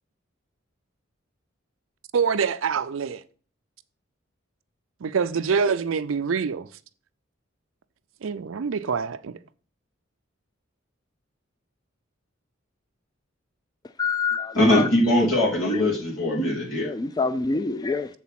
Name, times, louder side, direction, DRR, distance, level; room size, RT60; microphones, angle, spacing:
voice 1, 2.1-3.2 5.0-6.7 8.2-9.3, right 6 dB, 85° right, 0.5 m, -25 dB
voice 2, 14.0-14.9 15.2-15.9 16.8-18.1, left 4 dB, 20° left, 0.3 m, -27 dB
voice 3, 14.5-16.9, left 1 dB, 85° left, 3.1 m, -21 dB
7.2 x 4.0 x 5.8 m
head